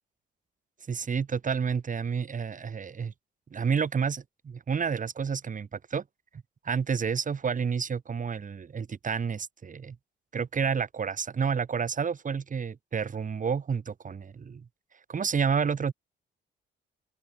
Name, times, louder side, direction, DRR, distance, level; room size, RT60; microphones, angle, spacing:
voice 1, 0.9-3.1 3.5-6.0 6.6-10.0 10.3-14.6 15.1-15.9, right 6 dB, 40° right, 3.3 m, -30 dB
open air
cardioid pair, 90°, 20 cm